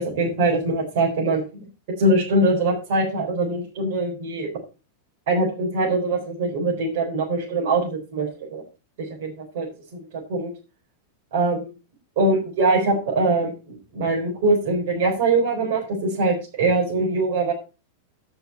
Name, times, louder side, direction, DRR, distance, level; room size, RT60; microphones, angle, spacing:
voice 1, 0.0-1.7 2.0-4.5 5.3-8.6 9.0-10.5 11.3-11.7 12.2-17.5, right 2 dB, 50° right, -3 dB, 4.4 m, -23 dB
15.5 x 6.8 x 4.3 m, 0.32 s
supercardioid pair, 180°, 0 cm